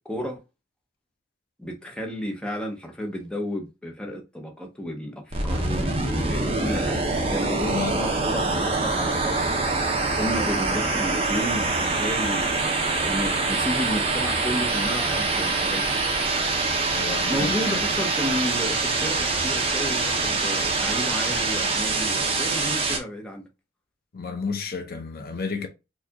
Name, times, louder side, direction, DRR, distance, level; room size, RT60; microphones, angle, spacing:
voice 1, 0.1-0.4 1.6-12.7 13.0-16.0 17.3-23.5, equal, 5° left, 0.8 m, -32 dB
sound 1, 5.3-23.0, right 3 dB, 30° right, 0.9 m, -25 dB
voice 2, 7.7-8.0 17.0-17.8 24.1-25.7, left 4 dB, 55° left, 0.7 m, -31 dB
4.4 x 2.4 x 2.8 m
head